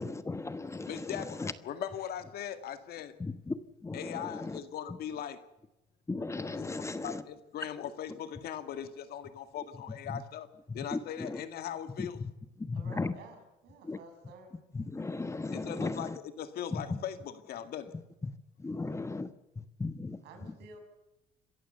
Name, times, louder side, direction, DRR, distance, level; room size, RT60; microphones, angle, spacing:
voice 1, 0.0-1.5 3.2-4.6 4.9-5.0 6.1-7.2 10.1-10.2 10.7-11.4 12.0-12.3 12.6-13.2 13.8-14.0 14.7-16.2 16.7-17.0 17.9-20.5, left 3 dB, 15° left, 1.2 m, -37 dB
voice 2, 0.9-3.1 3.9-5.4 6.6-6.7 7.0-10.5 10.7-12.2 15.5-16.1 16.4-17.9, left 9 dB, 65° left, 2.0 m, -39 dB
voice 3, 12.7-13.4 13.6-14.6 20.2-20.8, right 4 dB, 80° right, 6.6 m, -51 dB
26.5 x 14.5 x 6.9 m
cardioid pair, 110°, 17 cm